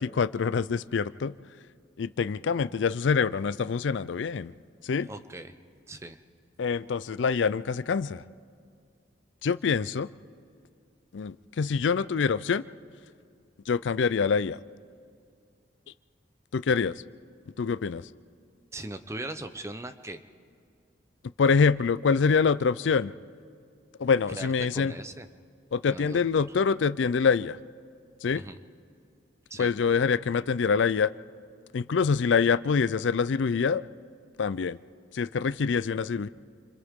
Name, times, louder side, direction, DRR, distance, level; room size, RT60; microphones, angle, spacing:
voice 1, 0.0-1.3 2.0-4.5 4.8-5.1 6.6-8.2 9.4-10.1 11.1-12.6 13.7-14.6 16.5-16.9 17.6-18.0 21.4-23.1 24.0-24.9 25.7-27.6 28.2-28.4 29.6-31.1 31.7-33.8 34.4-34.8 35.1-36.3, left 5 dB, 75° left, 16 dB, 0.4 m, -25 dB
voice 2, 5.0-5.5 5.9-6.2 18.7-20.2 24.3-25.3 25.9-26.5 28.3-28.6 29.5-29.7, right 2 dB, 15° right, 10 dB, 0.7 m, -39 dB
29.0 x 26.0 x 3.7 m, 2.3 s
head